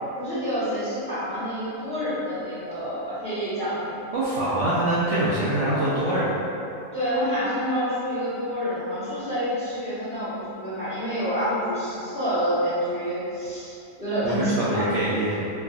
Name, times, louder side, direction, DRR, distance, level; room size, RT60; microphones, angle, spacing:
voice 1, 0.2-3.9 6.9-14.9, equal, 5° left, -15 dB, 0.8 m, -28 dB
voice 2, 4.1-6.4 14.2-15.5, right 1 dB, 65° right, -10 dB, 0.8 m, -24 dB
3.3 x 2.0 x 2.4 m, 2.8 s
omnidirectional pair, 1.5 m